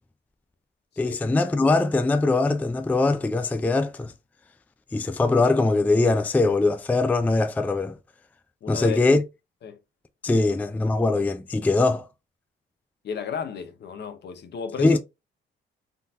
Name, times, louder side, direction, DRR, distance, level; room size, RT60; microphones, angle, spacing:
voice 1, 1.0-4.1 4.9-8.0 8.7-9.2 10.2-12.1 14.8-15.0, left 3 dB, 10° left, 0.3 m, -22 dB
voice 2, 8.6-9.0 9.6-9.8 10.3-10.5 13.0-15.0, left 6 dB, 60° left, 0.8 m, -33 dB
3.8 x 2.7 x 2.3 m
cardioid pair, 90°, 20 cm